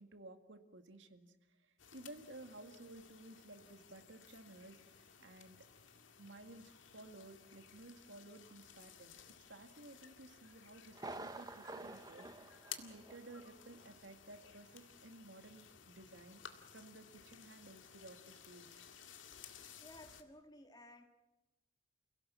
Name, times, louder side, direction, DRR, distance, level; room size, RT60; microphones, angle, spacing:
voice 1, 0.0-5.7 5.9-9.2 9.5-16.4 16.7-18.7, right 2 dB, 75° right, 7 dB, 2.0 m, -55 dB
sound 1, 1.8-20.2, left 8 dB, 90° left, 2.0 m, -57 dB
Thunder, 10.9-13.5 13.8-13.9 14.4-14.5, right 2 dB, 20° right, 0.9 m, -49 dB
voice 2, 19.8-21.0, left 1 dB, 20° left, 5 dB, 2.4 m, -56 dB
29.0 x 17.0 x 7.5 m, 1.0 s
head